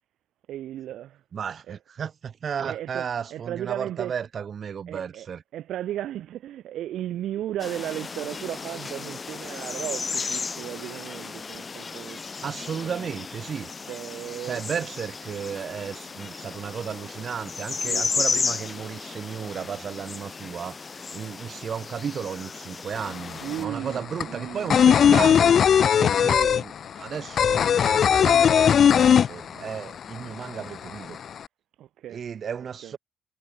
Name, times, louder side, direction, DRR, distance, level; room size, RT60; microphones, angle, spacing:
voice 1, 0.5-1.2 1.7-1.8 2.7-4.2 4.9-12.2 12.7-13.2 13.9-14.9 17.8-18.6 23.4-25.6 25.9-26.5 29.5-29.7 31.8-32.2 32.8-32.9, right 12 dB, 80° right, 7.4 m, -36 dB
voice 2, 1.3-5.4 12.4-13.7 14.4-31.2 32.1-33.0, right 7 dB, 50° right, 2.6 m, -34 dB
sound 1, 7.6-23.6, left 4 dB, 35° left, 2.0 m, -34 dB
sound 2, 23.0-23.1 23.3-29.9 30.2-30.3 30.6-31.4, left 8 dB, 55° left, 0.5 m, -18 dB
cardioid pair, 90°, 0 cm